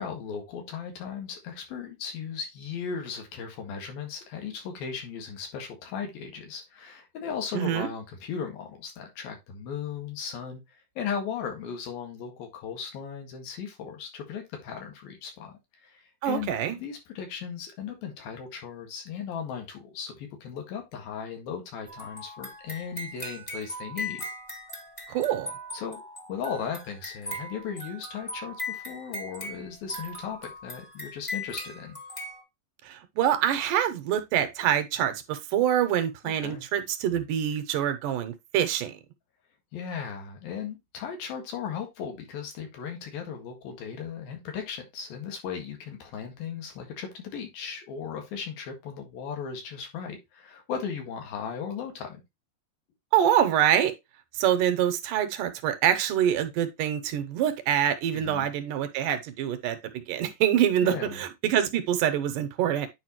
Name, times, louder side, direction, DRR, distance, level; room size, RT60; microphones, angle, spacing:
voice 1, 0.0-10.6 11.0-24.2 25.7-26.0 26.3-32.0 36.2-36.6 39.7-52.2 58.1-58.5 60.8-61.2, left 7 dB, 90° left, 3.6 m, -37 dB
voice 2, 7.5-7.9 16.2-16.8 25.1-25.5 32.8-38.9 53.1-53.9 54.3-59.8 60.1-62.9, right 10 dB, 75° right, 2.3 m, -25 dB
sound 1, 21.9-32.4, left 1 dB, 25° left, 0.7 m, -39 dB
9.3 x 4.9 x 3.0 m
omnidirectional pair, 4.0 m